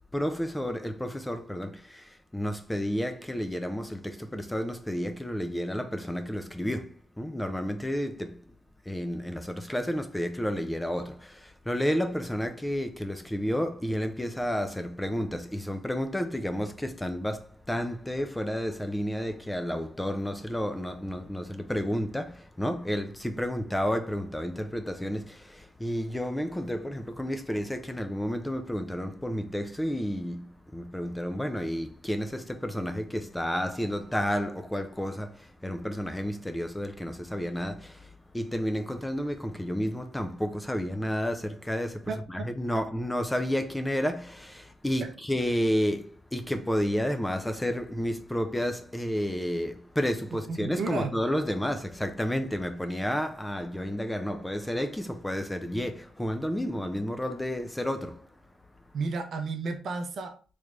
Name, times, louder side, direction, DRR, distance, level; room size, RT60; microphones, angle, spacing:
voice 1, 0.1-8.4 8.9-58.3, equal, 10° left, 0.4 m, -31 dB
voice 2, 42.1-42.8 45.0-45.1 50.3-51.1 58.9-60.4, right 4 dB, 55° right, 0.6 m, -33 dB
3.3 x 3.1 x 2.4 m
cardioid pair, 90°, 0 cm